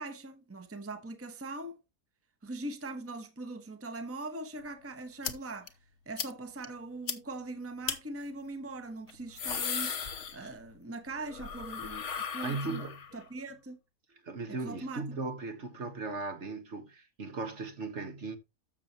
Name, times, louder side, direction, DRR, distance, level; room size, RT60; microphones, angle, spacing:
voice 1, 0.0-1.8 2.4-5.7 6.1-10.0 10.3-12.8 13.1-13.8 14.5-15.0, right 2 dB, 10° right, 1.1 m, -41 dB
sound 1, 5.2-5.3 5.7-5.8 6.2-6.3 6.6-6.7 7.1-7.2 7.9-8.0 9.1-10.8 11.1-13.2, left 7 dB, 55° left, 1.3 m, -36 dB
voice 2, 12.4-13.0 14.2-18.4, right 3 dB, 50° right, 1.6 m, -37 dB
13.0 x 6.9 x 2.9 m
omnidirectional pair, 1.6 m